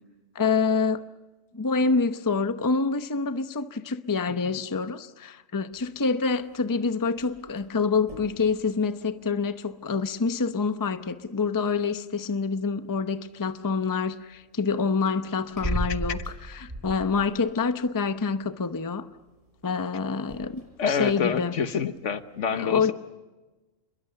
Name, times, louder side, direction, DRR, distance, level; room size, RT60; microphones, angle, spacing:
voice 1, 0.3-1.0 1.5-19.1 19.6-21.5 22.5-22.9, left 4 dB, 20° left, 0.7 m, -27 dB
sound 1, 5.7-22.4, equal, 25° right, 7.2 m, -41 dB
voice 2, 20.8-22.9, left 6 dB, 70° left, 1.5 m, -27 dB
28.5 x 22.0 x 6.9 m
omnidirectional pair, 1.3 m